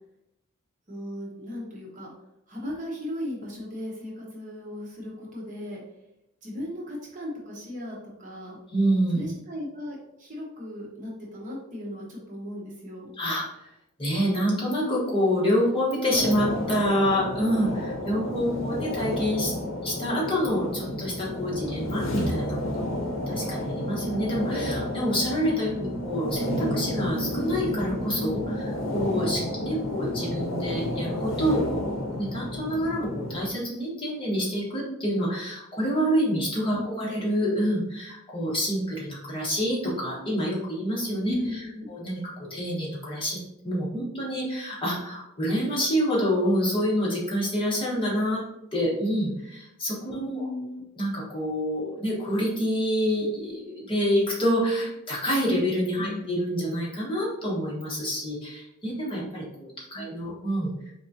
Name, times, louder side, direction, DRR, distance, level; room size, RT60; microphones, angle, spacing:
voice 1, 0.9-2.1 2.5-5.8 6.4-8.6 9.1-13.1 18.5-18.9 25.8-26.0 29.8-29.9 36.7-37.1 41.2-41.9 50.3-50.8 56.0-56.3 59.9-60.4, left 1 dB, 40° right, -3 dB, 1.0 m, -37 dB
voice 2, 8.7-9.2 13.2-13.7 14.0-19.5 19.8-23.0 23.3-41.6 41.9-43.4 43.6-48.4 48.7-50.4 51.0-60.9, equal, 25° left, -5 dB, 1.2 m, -27 dB
sound 1, 16.1-33.5, left 1 dB, 75° left, 0.7 m, -31 dB
4.0 x 3.5 x 2.8 m, 0.84 s
head